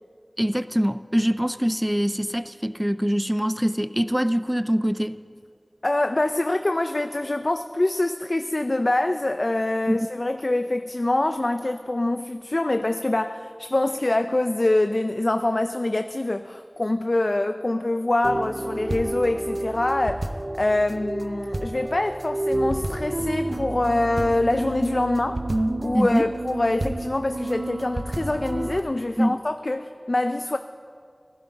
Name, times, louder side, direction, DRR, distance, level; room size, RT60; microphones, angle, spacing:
voice 1, 0.4-5.2 9.9-10.1 25.9-26.3 29.2-29.4, equal, 10° right, 13 dB, 0.4 m, -23 dB
voice 2, 5.8-20.3 20.6-25.4 25.8-30.6, left 2 dB, 60° left, 8 dB, 0.4 m, -24 dB
sound 1, 18.2-28.8, right 1 dB, 55° right, 0.6 m, -30 dB
15.0 x 15.0 x 4.0 m, 2.2 s
wide cardioid pair, 45°, 0 cm